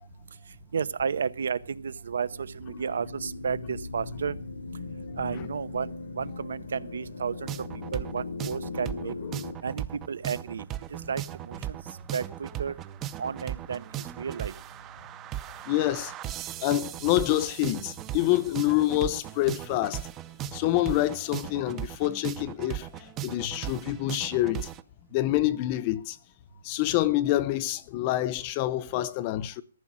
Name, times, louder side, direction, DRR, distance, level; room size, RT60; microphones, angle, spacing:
voice 1, 0.7-4.4 5.2-7.5 7.9-9.1 9.6-11.8 12.1-12.8 13.2-14.5, right 6 dB, 75° right, 0.8 m, -32 dB
sound 1, 2.3-9.6, left 3 dB, 80° left, 1.2 m, -39 dB
sound 2, 7.5-24.8, right 12 dB, 15° right, 0.5 m, -37 dB
voice 2, 15.7-16.1 16.6-20.0 20.5-24.7 25.1-26.2 26.6-29.6, left 15 dB, 25° left, 0.6 m, -27 dB
14.0 x 6.4 x 7.4 m
hypercardioid pair, 165°, 0 cm